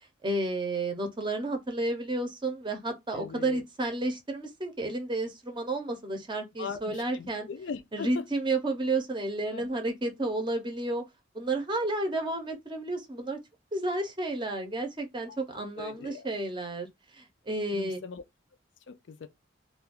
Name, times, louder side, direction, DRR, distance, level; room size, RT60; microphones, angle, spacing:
voice 1, 0.2-7.5 7.9-11.0 11.3-13.4 13.7-16.9 17.1-18.0, right 2 dB, 25° right, 0.6 m, -31 dB
voice 2, 3.1-3.6 6.6-8.2 9.5-9.7 15.3-15.4 15.8-16.3 17.7-18.2 18.9-19.3, left 5 dB, 65° left, 0.4 m, -40 dB
2.4 x 2.2 x 3.5 m
head